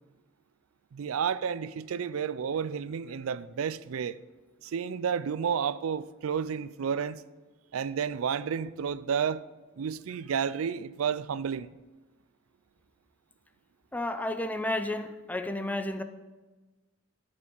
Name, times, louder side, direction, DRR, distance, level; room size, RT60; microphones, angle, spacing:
voice 1, 0.9-4.2 4.6-7.2 7.7-9.4 9.8-11.7, right 7 dB, 85° right, 0.4 m, -31 dB
voice 2, 13.9-16.0, left 1 dB, 10° left, 0.5 m, -32 dB
13.0 x 5.4 x 5.4 m
head